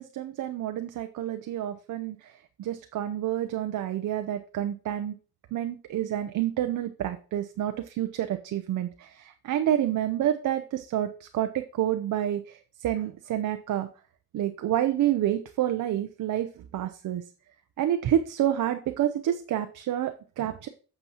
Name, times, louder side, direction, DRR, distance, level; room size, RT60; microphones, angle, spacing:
voice 1, 0.0-2.3 2.6-5.1 5.5-13.9 14.3-17.2 17.8-20.7, right 11 dB, 60° right, 8 dB, 0.6 m, -28 dB
8.1 x 6.9 x 2.8 m, 0.37 s
cardioid pair, 110°, 35 cm